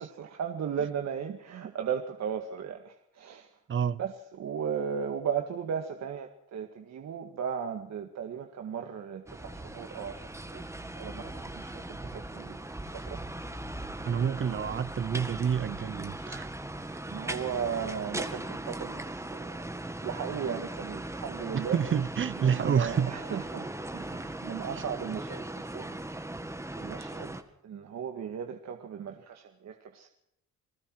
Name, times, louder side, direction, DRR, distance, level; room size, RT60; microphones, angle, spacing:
voice 1, 0.0-3.5 4.0-10.6 11.0-12.6 12.8-13.2 17.1-19.6 20.0-21.8 22.4-26.0 26.8-27.4 27.6-30.1, right 7 dB, 60° right, 2.0 m, -36 dB
voice 2, 3.7-4.0 14.0-16.5 21.5-23.1, right 7 dB, 40° right, 0.8 m, -28 dB
sound 1, 9.3-27.4, right 1 dB, 10° right, 1.9 m, -39 dB
30.0 x 19.0 x 4.7 m
cardioid pair, 90°, 30 cm